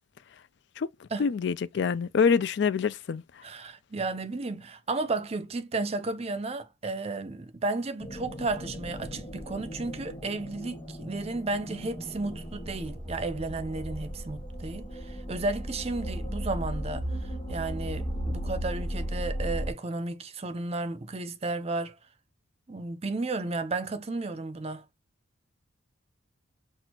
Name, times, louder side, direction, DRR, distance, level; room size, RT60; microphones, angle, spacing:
voice 1, 1.2-3.2, left 6 dB, 60° left, 0.4 m, -25 dB
voice 2, 3.4-22.0 22.7-24.8, right 3 dB, 30° right, 0.6 m, -33 dB
sound 1, 8.0-19.7, equal, 25° left, 1.9 m, -36 dB
6.1 x 2.4 x 2.9 m
head